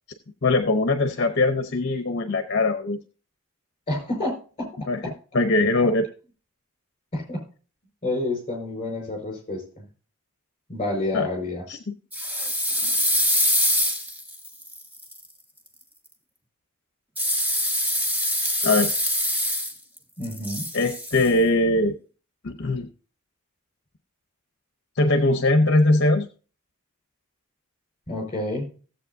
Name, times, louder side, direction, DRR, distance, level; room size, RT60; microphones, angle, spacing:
voice 1, 0.4-3.0 4.9-5.0 5.3-6.1 11.1-11.3 11.7-12.0 18.6-18.9 20.7-22.0 22.4-22.9 25.0-26.3, left 2 dB, 55° left, 8 dB, 0.8 m, -21 dB
voice 2, 3.9-5.1 7.1-7.4 8.0-9.8 10.7-11.6 20.2-20.7 28.1-28.7, left 2 dB, 30° left, 2 dB, 4.9 m, -29 dB
sound 1, 12.1-15.2 17.2-20.0 20.2-21.3, equal, 10° right, 1.1 m, -24 dB
17.0 x 7.8 x 2.7 m, 0.38 s
head